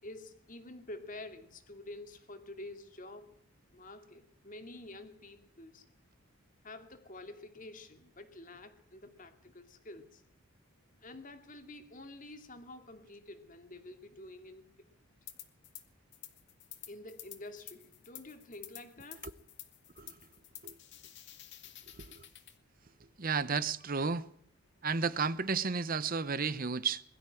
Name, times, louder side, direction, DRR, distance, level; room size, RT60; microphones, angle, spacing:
voice 1, 0.0-3.4 3.7-5.9 6.6-10.2 11.0-14.9 16.9-19.3, left 2 dB, 35° left, 2.4 m, -49 dB
sound 1, 15.3-15.8 16.1-22.6, left 13 dB, 50° left, 2.1 m, -50 dB
voice 2, 23.2-24.3 24.8-27.0, right 5 dB, 40° right, 0.8 m, -32 dB
22.0 x 13.0 x 9.0 m
head